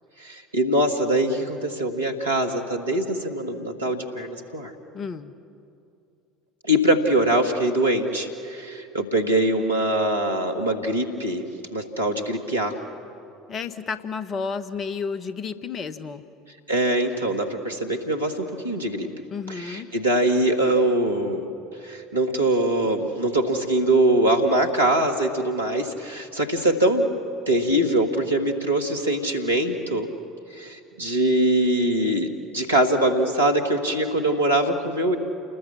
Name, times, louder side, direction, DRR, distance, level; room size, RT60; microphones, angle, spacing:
voice 1, 0.2-4.7 6.7-11.4 11.7-12.8 16.7-19.1 19.5-21.5 21.8-27.1 27.5-30.1 30.5-35.2, right 1 dB, 85° right, 3 dB, 1.8 m, -23 dB
voice 2, 4.9-5.3 13.5-16.2 19.3-19.9, left 5 dB, 35° left, 12 dB, 1.2 m, -31 dB
29.0 x 20.5 x 7.2 m, 2.6 s
figure-of-eight pair, 65°, 0 cm